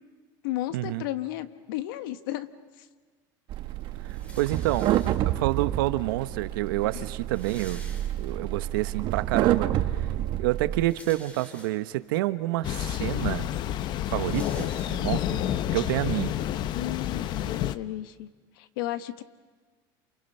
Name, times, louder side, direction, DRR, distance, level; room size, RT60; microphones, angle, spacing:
voice 1, 0.4-2.5 2.8-2.9 6.9-7.0 16.7-18.3 18.6-19.2, left 14 dB, 85° left, 11 dB, 1.3 m, -33 dB
sound 1, 3.5-10.8, right 13 dB, 45° right, 1.2 m, -29 dB
sound 2, 4.1-5.5 6.4-6.5 6.7-6.8 7.0-8.6 9.0-9.1 10.5-12.1 12.7-12.8 13.1-15.4, equal, 10° left, 3.2 m, -49 dB
voice 2, 4.1-4.9 5.2-7.9 8.2-10.1 10.4-13.5 14.1-16.3, right 16 dB, 90° right, 13 dB, 1.0 m, -28 dB
Thunder, 12.6-17.8, left 11 dB, 40° left, 0.7 m, -29 dB
29.0 x 28.5 x 5.6 m, 1.4 s
supercardioid pair, 145°, 11 cm